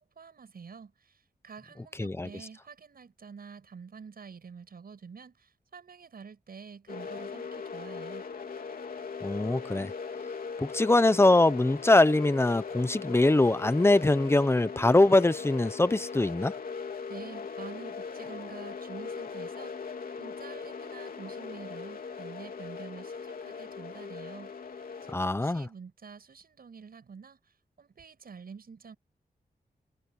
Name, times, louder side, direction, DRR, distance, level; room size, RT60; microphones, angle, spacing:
voice 1, 0.0-8.3 17.1-29.0, right 5 dB, 70° right, 7.4 m, -48 dB
sound 1, 6.9-25.1, left 5 dB, 65° left, 3.2 m, -39 dB
voice 2, 9.2-9.9 10.6-16.5 25.1-25.7, left 2 dB, 15° left, 0.9 m, -23 dB
wide cardioid pair, 130°, 16 cm